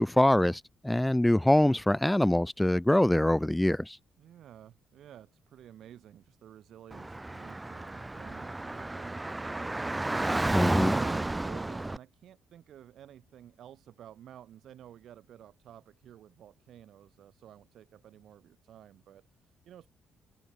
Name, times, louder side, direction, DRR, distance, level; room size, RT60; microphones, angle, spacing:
voice 1, 0.0-4.0 10.5-10.9, left 1 dB, 5° left, 0.5 m, -24 dB
voice 2, 4.2-9.9 10.9-19.9, right 11 dB, 70° right, 6.0 m, -52 dB
Car / Traffic noise roadway noise, 6.9-12.0, right 2 dB, 15° right, 2.3 m, -32 dB
cardioid pair, 90°, 0 cm